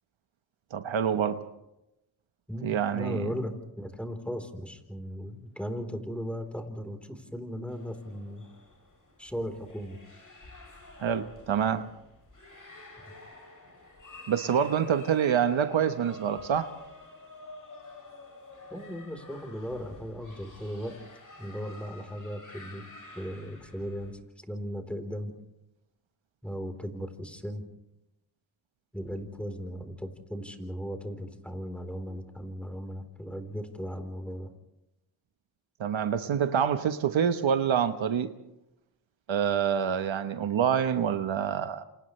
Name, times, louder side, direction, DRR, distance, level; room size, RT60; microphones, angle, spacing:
voice 1, 0.7-1.4 2.6-3.3 11.0-11.9 14.3-16.7 35.8-38.3 39.3-41.8, right 8 dB, 70° right, 9 dB, 1.2 m, -26 dB
voice 2, 2.5-8.5 9.2-10.0 18.7-21.0 21.4-22.8 23.1-25.3 26.4-27.6 28.9-34.5, equal, ahead, 6 dB, 4.0 m, -37 dB
sound 1, 7.7-24.1, left 2 dB, 40° left, 7.5 m, -50 dB
29.0 x 28.0 x 3.3 m, 0.88 s
cardioid pair, 60°, 48 cm